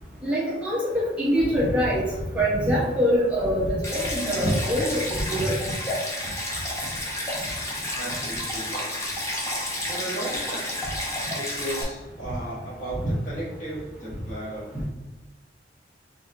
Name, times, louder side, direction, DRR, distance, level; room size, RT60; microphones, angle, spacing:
voice 1, 0.2-2.1 2.3-5.6, equal, 5° right, -8 dB, 1.1 m, -24 dB
Stream, 3.8-11.8, left 1 dB, 15° left, 0.8 m, -31 dB
voice 2, 8.0-8.9 9.9-10.8 11.3-14.9, right 1 dB, 45° left, -6 dB, 1.4 m, -35 dB
4.1 x 3.4 x 2.7 m, 1.1 s
head